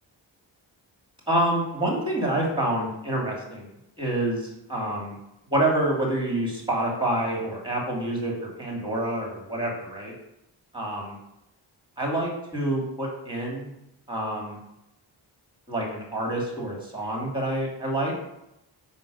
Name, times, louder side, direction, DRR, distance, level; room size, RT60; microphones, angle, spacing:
voice 1, 1.3-3.7 4.0-5.1 5.5-10.1 10.7-11.1 12.0-13.7 14.1-14.6 15.7-18.1, right 1 dB, 10° right, -1 dB, 2.5 m, -27 dB
5.7 x 3.8 x 5.2 m, 0.85 s
cardioid pair, 55°, 47 cm